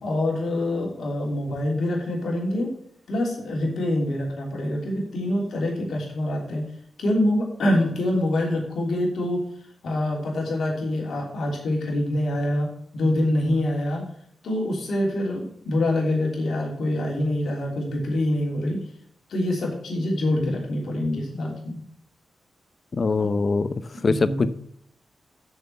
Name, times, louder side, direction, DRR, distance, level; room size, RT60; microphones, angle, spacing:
voice 1, 0.0-2.7 3.1-6.6 7.0-9.4 9.8-12.7 12.9-14.0 14.4-18.8 19.3-21.8 24.0-24.5, left 1 dB, 75° left, -1 dB, 3.2 m, -25 dB
voice 2, 22.9-23.7 24.0-24.5, left 4 dB, 50° left, 14 dB, 0.7 m, -22 dB
6.8 x 6.8 x 5.6 m, 0.68 s
supercardioid pair, 45°, 0 cm